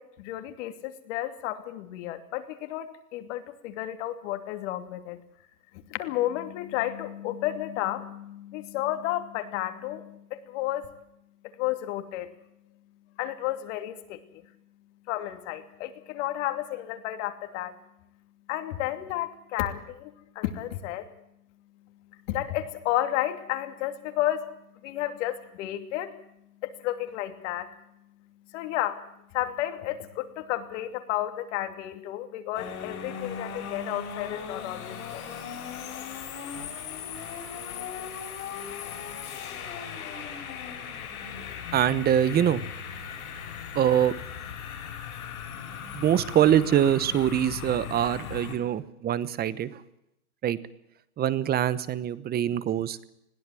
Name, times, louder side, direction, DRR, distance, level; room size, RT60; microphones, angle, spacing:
voice 1, 0.2-2.9 3.1-5.2 5.9-10.9 11.6-12.3 13.2-14.2 15.1-17.7 18.5-21.1 22.3-24.5 24.8-26.1 26.6-27.7 28.5-29.0 29.3-35.2, left 13 dB, 55° left, 8 dB, 2.9 m, -32 dB
sound 1, 32.5-48.5, left 7 dB, 70° left, 7.1 m, -38 dB
voice 2, 41.7-42.6 43.7-44.1 45.9-49.8 50.4-50.6 51.2-53.0, right 10 dB, 20° right, 17 dB, 1.0 m, -24 dB
21.0 x 16.5 x 7.7 m, 0.79 s
hypercardioid pair, 125°, 44 cm